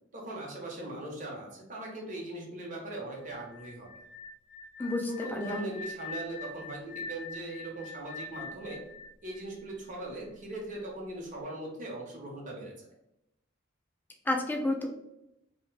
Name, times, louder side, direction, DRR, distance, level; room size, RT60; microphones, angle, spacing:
voice 1, 0.1-3.9 4.8-8.8 9.2-12.9, right 1 dB, 40° right, -2 dB, 0.8 m, -40 dB
sound 1, 3.2-10.1, left 3 dB, 75° right, 0.7 m, -44 dB
voice 2, 4.8-5.7 14.3-14.9, left 1 dB, 10° left, 2 dB, 0.3 m, -31 dB
2.7 x 2.1 x 3.2 m, 0.87 s
head